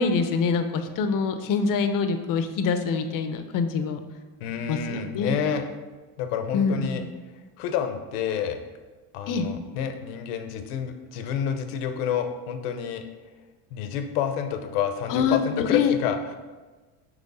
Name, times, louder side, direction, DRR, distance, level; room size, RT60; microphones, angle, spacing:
voice 1, 0.0-4.0 4.7-5.3 6.5-7.1 9.3-9.4 15.1-15.9, left 5 dB, 45° left, 8 dB, 0.7 m, -25 dB
voice 2, 4.4-5.6 6.2-7.0 7.6-8.6 9.1-13.0 13.7-16.3, left 8 dB, 85° left, 7 dB, 0.9 m, -29 dB
6.4 x 3.1 x 5.4 m, 1.3 s
supercardioid pair, 120°, 45 cm